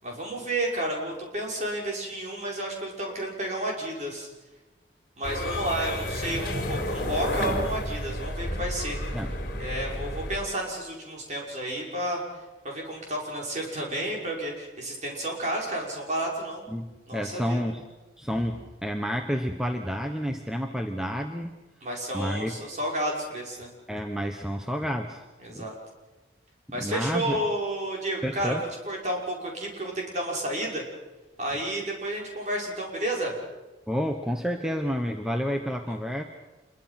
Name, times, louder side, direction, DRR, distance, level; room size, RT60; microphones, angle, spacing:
voice 1, 0.0-4.3 5.2-9.0 9.6-12.2 12.6-16.7 17.1-17.7 21.8-23.7 25.4-25.8 26.7-28.6 28.9-30.8 31.4-33.3 35.9-36.0, right 1 dB, 40° right, -1 dB, 5.9 m, -31 dB
sound 1, 5.2-10.4, left 1 dB, 50° left, 4.0 m, -31 dB
voice 2, 16.7-17.8 18.2-21.6 22.1-22.5 23.9-25.2 25.5-25.7 26.7-27.4 28.2-28.6 33.9-36.2, equal, 5° right, 4 dB, 1.0 m, -30 dB
27.5 x 22.5 x 5.9 m, 1.2 s
head